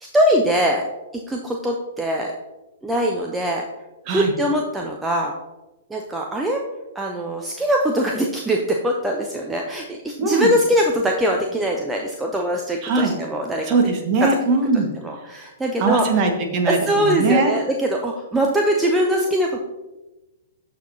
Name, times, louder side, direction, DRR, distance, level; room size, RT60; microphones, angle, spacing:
voice 1, 0.1-0.9 1.1-2.3 2.8-3.7 4.1-5.3 5.9-6.7 6.9-13.8 14.2-14.4 14.7-16.3 16.7-19.6, equal, 10° right, 1 dB, 0.7 m, -22 dB
voice 2, 10.2-10.5 12.8-13.1 13.7-14.9 15.8-17.5, right 3 dB, 35° right, 3 dB, 1.6 m, -20 dB
13.5 x 4.8 x 2.8 m, 1.0 s
figure-of-eight pair, 110°, 0 cm